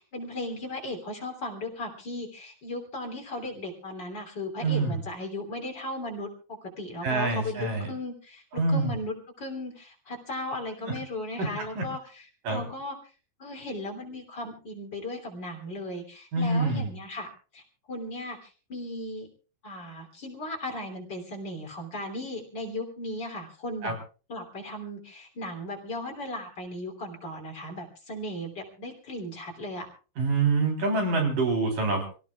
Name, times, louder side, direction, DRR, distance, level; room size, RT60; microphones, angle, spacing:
voice 1, 0.0-12.0 12.5-13.0 13.4-17.3 17.5-17.6 17.9-18.4 18.7-19.3 19.6-24.0 24.3-29.9, left 1 dB, 35° left, 1 dB, 3.7 m, -36 dB
voice 2, 4.6-5.0 7.0-7.9 8.6-8.9 10.8-10.9 11.4-11.9 12.5-12.6 16.3-16.9 23.8-23.9 30.2-32.1, right 3 dB, 85° right, 2 dB, 5.4 m, -26 dB
27.0 x 17.5 x 2.4 m, 0.36 s
omnidirectional pair, 3.7 m